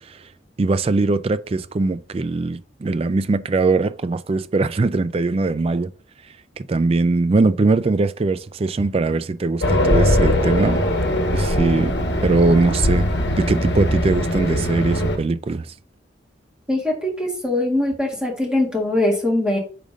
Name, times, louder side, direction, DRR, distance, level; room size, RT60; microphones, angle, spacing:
voice 1, 0.6-5.9 6.6-10.8 11.3-13.1 13.4-15.7, right 3 dB, 30° right, 0.3 m, -21 dB
Race car auto racing, 9.6-15.2, left 1 dB, 65° left, 1.2 m, -20 dB
voice 2, 16.7-19.6, left 1 dB, 5° right, 1.8 m, -21 dB
5.1 x 3.8 x 5.1 m
head